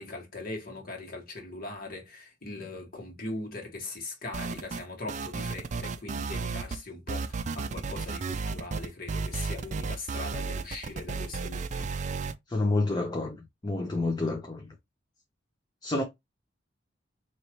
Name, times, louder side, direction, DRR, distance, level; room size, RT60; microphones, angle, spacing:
voice 1, 0.0-11.7, left 2 dB, 50° left, 1.7 m, -40 dB
sound 1, 4.3-4.8 5.1-6.8 7.1-12.3, right 4 dB, 40° right, 0.4 m, -33 dB
voice 2, 12.5-13.4 13.6-14.6 15.8-16.0, left 2 dB, 20° left, 0.6 m, -28 dB
4.7 x 3.1 x 3.0 m
head